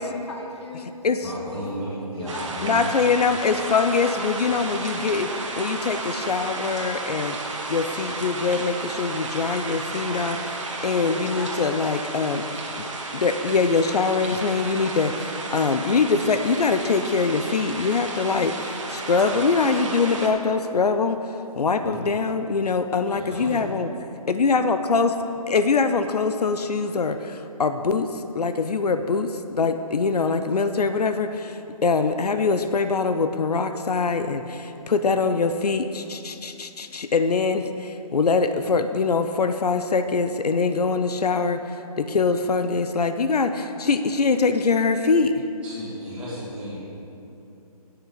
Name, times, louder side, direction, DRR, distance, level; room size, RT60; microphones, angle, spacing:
voice 1, 0.0-1.6 2.1-2.9 10.9-12.4, left 2 dB, 45° left, 1 dB, 1.0 m, -39 dB
voice 2, 1.2-2.9 4.5-4.7 21.8-22.0 23.1-23.6 45.6-46.8, equal, 5° right, -13 dB, 2.5 m, -34 dB
sound 1, 2.3-20.3, right 3 dB, 50° right, 1.4 m, -33 dB
voice 3, 2.6-7.4 7.7-12.4 12.8-21.2 21.6-23.9 24.3-25.2 25.5-45.4, left 4 dB, 80° left, 9 dB, 0.7 m, -23 dB
8.9 x 8.4 x 5.8 m, 2.9 s
hypercardioid pair, 170°, 20 cm